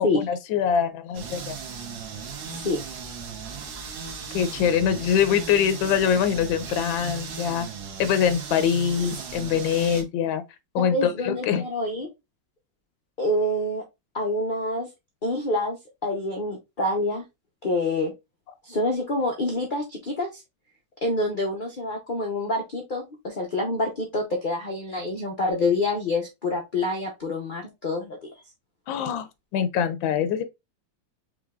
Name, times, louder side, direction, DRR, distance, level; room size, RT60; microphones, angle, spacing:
voice 1, 0.0-1.6 4.3-7.7 8.0-10.4 10.7-11.6 28.9-30.4, left 8 dB, 85° left, 1.4 m, -24 dB
sound 1, 1.1-10.0, right 5 dB, 85° right, 1.6 m, -37 dB
voice 2, 2.5-2.8 10.8-12.1 13.2-13.8 14.1-14.9 15.2-15.8 16.0-17.2 17.6-18.1 18.6-20.4 21.0-28.2, left 2 dB, 65° left, 0.5 m, -27 dB
5.0 x 3.2 x 2.3 m
omnidirectional pair, 2.1 m